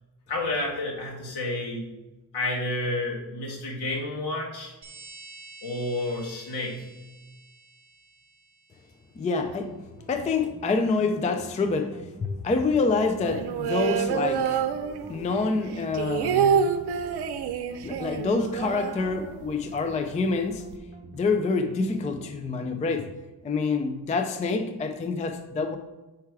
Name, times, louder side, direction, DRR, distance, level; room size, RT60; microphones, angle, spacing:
voice 1, 0.3-1.8 2.3-4.7 5.6-6.8, left 2 dB, 70° left, -2 dB, 1.9 m, -30 dB
sound 1, 4.8-9.1, right 3 dB, 45° right, 1.5 m, -49 dB
voice 2, 9.2-14.7 15.1-16.8 17.8-20.7 21.1-23.1 23.4-25.8, left 4 dB, 20° left, 7 dB, 0.3 m, -27 dB
sound 2, 9.5-23.2, right 2 dB, 25° right, 0.7 m, -47 dB
sound 3, 13.2-15.3 15.7-19.6 19.9-20.0 20.3-20.8, right 7 dB, 70° right, 0.6 m, -27 dB
5.9 x 4.6 x 4.7 m, 1.1 s
wide cardioid pair, 160°, 40 cm